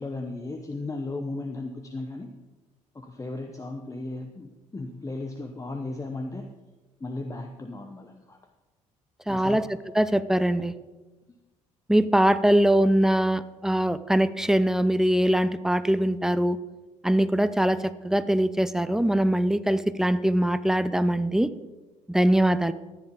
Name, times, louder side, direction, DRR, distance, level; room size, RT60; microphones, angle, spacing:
voice 1, 0.0-2.3 2.9-6.5 7.0-8.4 9.3-9.6, left 2 dB, 20° left, 5 dB, 1.0 m, -35 dB
voice 2, 9.3-9.6 9.9-10.7 11.9-16.6 17.0-21.5 22.1-22.7, right 1 dB, 5° right, 14 dB, 0.6 m, -22 dB
14.0 x 10.0 x 3.6 m, 1.2 s
figure-of-eight pair, 50°, 17 cm